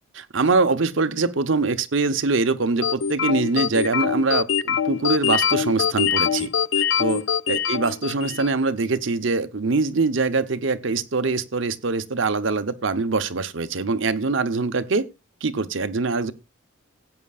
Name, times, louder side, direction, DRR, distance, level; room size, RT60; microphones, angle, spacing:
voice 1, 0.1-15.1 15.4-16.3, right 3 dB, 70° right, 0.8 m, -23 dB
sound 1, 2.8-8.6, left 7 dB, 70° left, 0.6 m, -23 dB
17.0 x 8.6 x 2.4 m
head